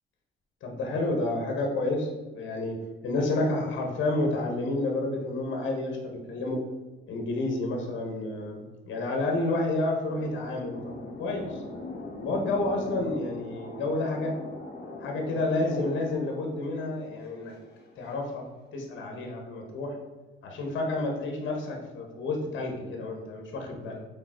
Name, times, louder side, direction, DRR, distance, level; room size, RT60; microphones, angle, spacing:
voice 1, 0.6-2.8 3.0-6.6 7.1-11.6 12.2-14.4 15.0-17.5 18.0-18.4 18.7-20.0 20.4-24.0, left 2 dB, 70° left, 2 dB, 1.4 m, -30 dB
sound 1, 10.0-18.1, left 2 dB, 55° left, 1.6 m, -42 dB
5.8 x 4.5 x 4.4 m, 1.2 s
cardioid pair, 90°, 20 cm